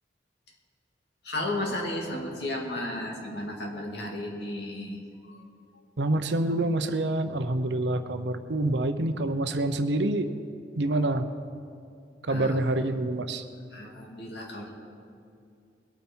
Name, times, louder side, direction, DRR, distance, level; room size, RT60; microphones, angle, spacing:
voice 1, 1.2-5.0 5.3-5.4 12.3-12.6 13.7-14.7, left 1 dB, 65° left, -1 dB, 2.2 m, -34 dB
voice 2, 6.0-10.3 10.8-11.3 12.3-13.4, right 2 dB, 75° right, 8 dB, 0.7 m, -27 dB
21.0 x 9.1 x 4.5 m, 2.5 s
head